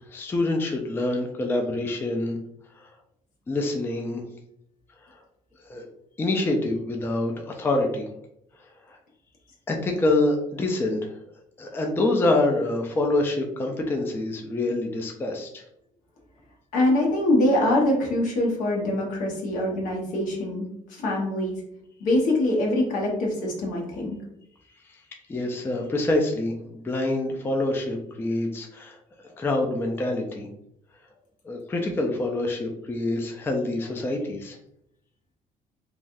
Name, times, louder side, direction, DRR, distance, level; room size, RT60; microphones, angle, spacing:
voice 1, 0.1-2.4 2.8-2.9 3.5-4.2 5.7-5.9 6.2-8.0 8.9-9.0 9.7-11.2 11.6-15.6 25.3-29.0 29.4-30.5 31.4-34.6, left 2 dB, 15° left, 2 dB, 0.3 m, -26 dB
voice 2, 16.7-21.6 22.0-24.2, left 1 dB, 75° left, -1 dB, 1.0 m, -24 dB
3.2 x 2.3 x 2.5 m, 0.78 s
cardioid pair, 140°, 14 cm